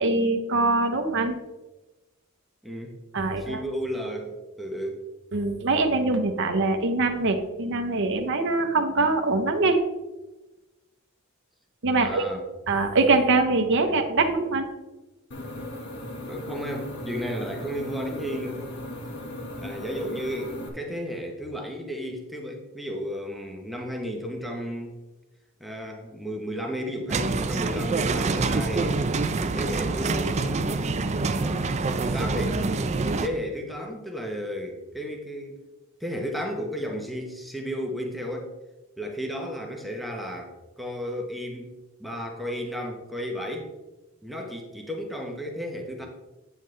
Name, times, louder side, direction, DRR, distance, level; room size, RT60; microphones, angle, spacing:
voice 1, 0.0-1.3 3.1-3.6 5.3-9.8 11.8-12.3 12.7-14.7, right 3 dB, 55° right, 5 dB, 0.8 m, -23 dB
voice 2, 2.6-3.0 3.4-5.0 12.0-12.4 16.3-18.7 19.6-25.0 25.6-29.0 29.4-30.8 31.4-32.6 33.2-35.6 36.0-38.5 39.0-41.7 42.0-43.7 44.2-46.1, equal, ahead, 1 dB, 0.9 m, -33 dB
sound 1, 15.3-20.7, left 1 dB, 55° left, 1.4 m, -37 dB
sound 2, 27.1-33.3, right 3 dB, 30° right, 0.4 m, -26 dB
8.9 x 7.3 x 3.2 m, 1.1 s
head